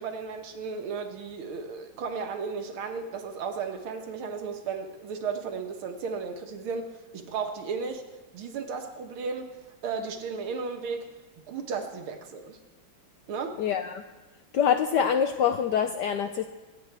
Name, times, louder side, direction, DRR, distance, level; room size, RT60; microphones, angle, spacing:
voice 1, 0.0-8.1 8.3-9.6 9.8-11.1 11.5-12.6 13.3-13.6, right 5 dB, 75° right, 5 dB, 2.0 m, -34 dB
voice 2, 13.6-14.0 14.5-16.5, left 8 dB, 75° left, 7 dB, 1.0 m, -25 dB
25.5 x 8.8 x 3.4 m, 1.2 s
omnidirectional pair, 2.4 m